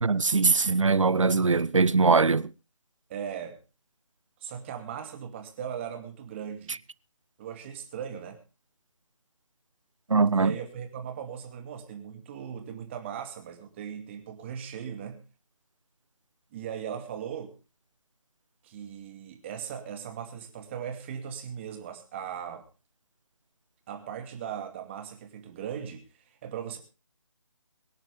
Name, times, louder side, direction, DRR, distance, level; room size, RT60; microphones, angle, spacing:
voice 1, 0.0-2.5 10.1-10.5, right 4 dB, 70° right, 0.8 m, -22 dB
voice 2, 3.1-3.6 4.4-6.8 7.4-8.4 10.3-15.2 16.5-17.6 18.6-22.7 23.9-26.8, right 8 dB, 20° right, 2.5 m, -38 dB
23.0 x 10.0 x 3.5 m
figure-of-eight pair, 155°, 17 cm